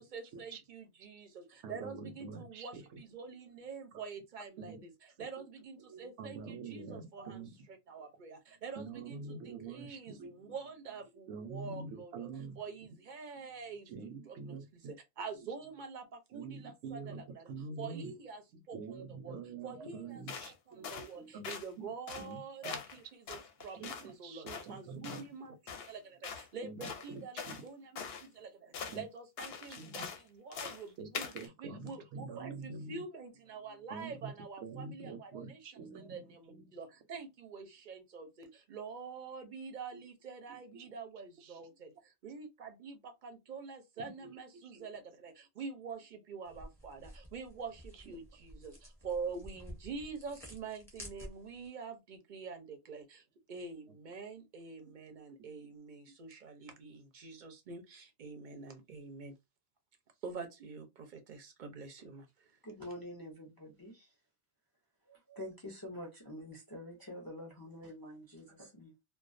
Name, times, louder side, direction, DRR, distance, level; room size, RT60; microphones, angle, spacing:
voice 1, 0.0-4.9 5.2-7.4 7.9-12.3 12.6-13.9 14.3-14.6 14.9-17.5 17.8-18.8 19.1-19.4 19.6-20.2 20.7-59.4 60.2-62.6, right 5 dB, 55° right, 0.6 m, -46 dB
voice 2, 1.6-2.8 3.9-4.0 4.6-4.8 5.4-5.5 5.9-7.6 8.8-10.5 11.3-12.6 13.9-14.9 16.3-17.2 17.5-18.1 18.5-20.9 21.2-21.5 21.8-21.9 22.2-22.8 23.7-25.2 26.6-27.6 28.9-29.0 29.8-30.1 31.0-32.9 33.9-34.3 34.6-36.8 39.9-40.0 40.5-40.9 41.4-41.7 44.2-44.9 55.4-55.7, right 4 dB, 80° right, 0.9 m, -46 dB
sound 1, 20.3-20.5 20.8-21.1 21.4-21.7 22.1-22.3 22.6-23.0 23.3-24.1 24.5-24.7 25.0-25.3 25.7-25.9 26.2-26.5 26.8-27.6 28.0-28.3 28.7-29.0 29.4-30.2 30.5-30.8 31.1-31.5, left 6 dB, 65° left, 0.7 m, -43 dB
sound 2, 46.5-51.7, equal, 5° left, 0.7 m, -51 dB
voice 3, 62.6-64.1 65.1-68.9, left 1 dB, 30° left, 0.4 m, -47 dB
2.3 x 2.2 x 2.4 m
omnidirectional pair, 1.2 m